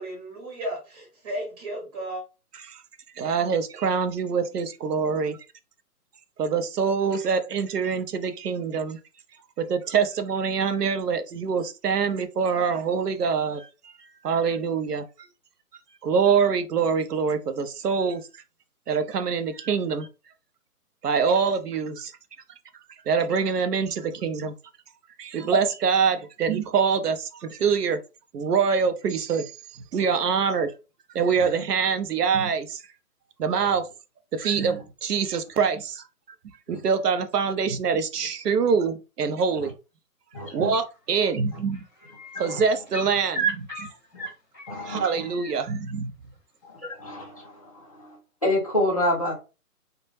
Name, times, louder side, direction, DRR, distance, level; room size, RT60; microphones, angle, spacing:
voice 1, 0.0-2.2, right 1 dB, 25° right, 1.1 m, -34 dB
voice 2, 3.2-5.4 6.4-9.0 9.6-13.9 14.2-15.1 16.0-18.2 18.9-20.1 21.0-22.1 23.1-24.5 25.2-28.0 28.3-30.7 31.1-32.8 33.4-33.9 34.3-36.0 36.7-39.7 40.5-41.8 42.4-43.9 44.9-46.1, right 6 dB, 80° right, 0.7 m, -25 dB
voice 3, 40.3-40.7 42.4-42.6 44.1-44.2 44.7-45.2 46.7-47.6 48.0-48.2 48.4-49.3, left 1 dB, 25° left, 0.5 m, -27 dB
sound 1, 40.8-41.2 41.5-45.5 47.2-47.3, right 5 dB, 5° right, 0.8 m, -34 dB
2.2 x 2.1 x 3.1 m
hypercardioid pair, 160°, 46 cm